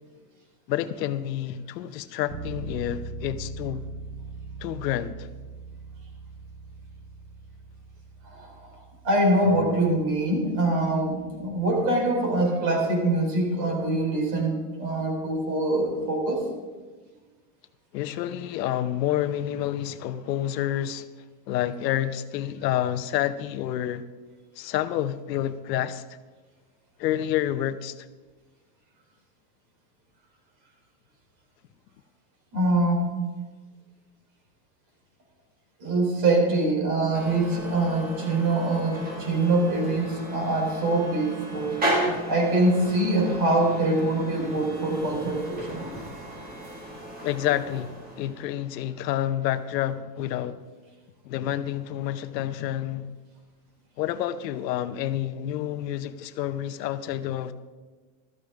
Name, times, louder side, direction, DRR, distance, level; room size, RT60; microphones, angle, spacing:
voice 1, 0.7-3.9 4.6-5.3 17.9-21.1 21.5-24.0 24.6-26.0 27.0-28.0 47.2-50.6 51.2-53.1 54.0-57.5, left 12 dB, 75° left, 0.9 m, -29 dB
Bass guitar, 2.3-12.0, right 3 dB, 85° right, 1.7 m, -41 dB
voice 2, 8.2-8.7 9.0-16.5 32.5-33.1 35.8-41.8 42.3-45.8, right 2 dB, 40° right, 3.4 m, -24 dB
sound 1, 37.1-48.5, right 1 dB, 15° right, 2.0 m, -34 dB
13.5 x 13.5 x 3.5 m
supercardioid pair, 165°, 50 cm